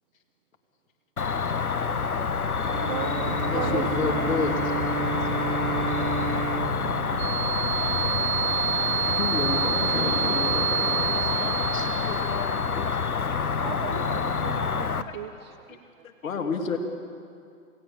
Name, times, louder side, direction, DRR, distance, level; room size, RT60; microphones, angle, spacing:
Cricket, 1.2-15.0, left 5 dB, 85° left, 1.2 m, -27 dB
Bowed string instrument, 2.6-8.3, right 7 dB, 70° right, 0.9 m, -32 dB
voice 1, 2.9-4.5 13.6-16.1, right 12 dB, 30° right, 7 dB, 0.6 m, -37 dB
voice 2, 3.5-4.6 9.1-10.7 11.7-12.0 15.1-15.2 15.4-15.8 16.2-16.8, left 5 dB, 65° left, 4 dB, 2.9 m, -30 dB
sound 1, 7.2-12.8, right 11 dB, 50° right, 1.4 m, -28 dB
voice 3, 9.9-10.3 10.9-13.0, left 6 dB, 10° left, 10 dB, 1.0 m, -42 dB
28.5 x 18.0 x 7.4 m, 2.4 s
figure-of-eight pair, 125°, 43 cm